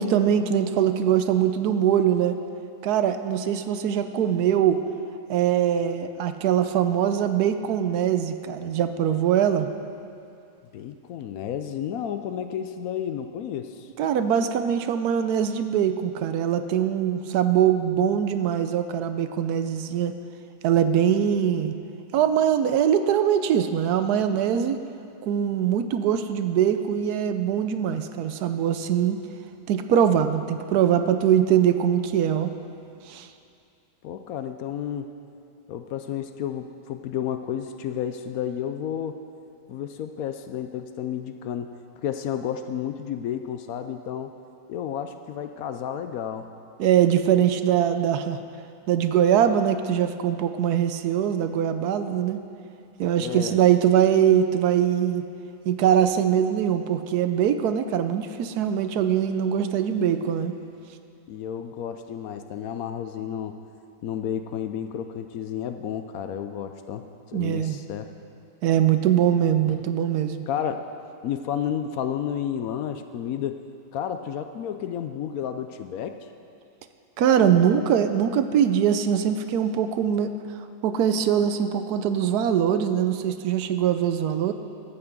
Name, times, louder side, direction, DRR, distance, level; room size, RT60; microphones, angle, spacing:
voice 1, 0.0-2.4 2.8-4.8 5.3-9.7 14.0-20.2 20.6-21.7 22.1-24.8 25.2-29.2 29.7-32.5 33.1-33.3 46.8-48.4 48.9-52.4 53.0-55.2 55.7-60.5 67.3-67.8 68.6-70.4 77.2-80.4 80.8-84.5, right 9 dB, 75° right, 9 dB, 1.1 m, -22 dB
voice 2, 10.7-13.9 34.0-35.1 35.7-39.2 39.7-41.7 42.0-44.3 44.7-46.5 53.2-53.6 61.3-63.6 64.0-67.1 67.3-68.1 70.5-70.8 71.2-73.6 73.9-76.2, left 9 dB, 70° left, 8 dB, 0.9 m, -31 dB
13.0 x 5.9 x 7.9 m, 2.4 s
omnidirectional pair, 1.7 m